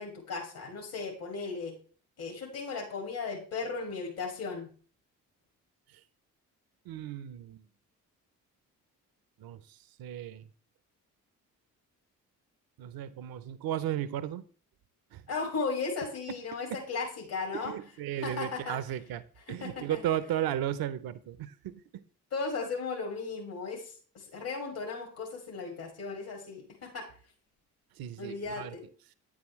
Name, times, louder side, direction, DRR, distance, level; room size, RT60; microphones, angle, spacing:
voice 1, 0.0-1.8 2.2-4.7 15.3-17.7 18.1-18.8 19.4-20.1 22.3-27.1 28.2-28.9, left 4 dB, 65° left, 2.3 m, -36 dB
voice 2, 6.9-7.6 9.4-9.6 10.0-10.4 12.8-14.4 15.1-15.2 17.5-19.2 19.5-22.0 28.0-28.7, right 11 dB, 65° right, 0.7 m, -34 dB
8.8 x 7.4 x 3.1 m
hypercardioid pair, 45°, 39 cm